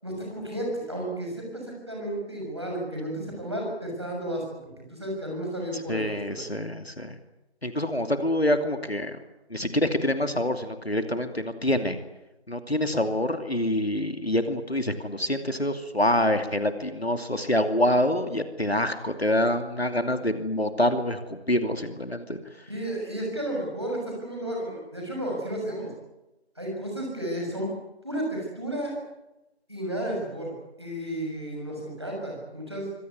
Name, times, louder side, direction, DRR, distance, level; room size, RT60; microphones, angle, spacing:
voice 1, 0.0-4.4 4.9-6.4 22.7-25.9 26.6-27.8 28.0-29.0 29.7-32.9, right 1 dB, 25° right, -1 dB, 6.7 m, -32 dB
voice 2, 5.9-7.2 7.6-9.2 9.5-12.0 12.5-22.4, left 1 dB, 65° left, 8 dB, 2.7 m, -26 dB
24.5 x 18.0 x 9.5 m, 0.96 s
figure-of-eight pair, 180°, 34 cm